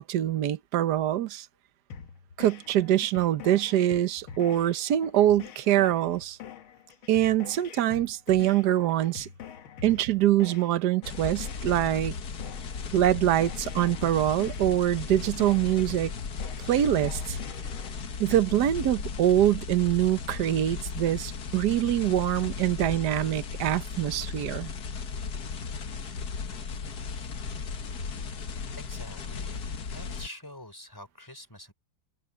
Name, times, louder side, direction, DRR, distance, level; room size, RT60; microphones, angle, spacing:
voice 1, 0.0-1.5 2.4-6.4 7.1-9.3 9.8-12.1 12.9-16.1 16.6-17.4 18.2-24.7, right 12 dB, 60° right, 1.4 m, -24 dB
sound 1, 1.9-17.9, left 7 dB, 85° left, 2.1 m, -45 dB
sound 2, 11.0-30.3, left 5 dB, 55° left, 1.8 m, -36 dB
voice 2, 28.8-29.7 29.9-31.7, left 1 dB, 10° left, 4.4 m, -45 dB
open air
omnidirectional pair, 2.2 m